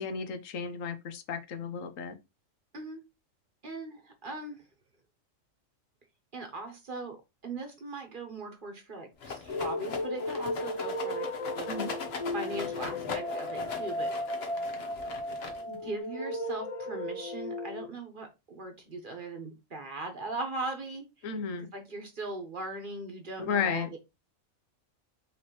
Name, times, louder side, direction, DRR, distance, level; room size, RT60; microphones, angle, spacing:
voice 1, 0.0-2.2 11.7-11.9 21.2-21.7 23.4-23.9, left 6 dB, 85° left, 1.1 m, -33 dB
voice 2, 3.6-4.6 6.3-7.2 7.4-11.3 11.5-11.7 11.9-14.1 15.7-21.3 21.6-24.0, right 2 dB, 45° right, 1.0 m, -39 dB
Rattle, 9.2-15.9, left 5 dB, 55° left, 1.1 m, -40 dB
sound 1, 9.5-17.9, left 1 dB, 40° left, 0.5 m, -35 dB
5.3 x 3.2 x 2.9 m
omnidirectional pair, 1.3 m